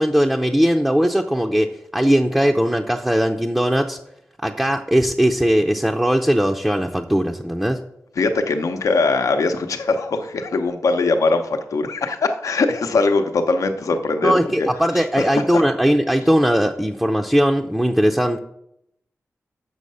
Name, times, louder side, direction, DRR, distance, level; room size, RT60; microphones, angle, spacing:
voice 1, 0.0-4.0 4.4-7.8 14.2-18.4, equal, 5° right, 2 dB, 0.6 m, -19 dB
voice 2, 8.2-14.7 15.5-15.6, left 3 dB, 85° left, 6 dB, 0.7 m, -21 dB
6.3 x 6.3 x 5.5 m, 0.80 s
cardioid pair, 45°, 5 cm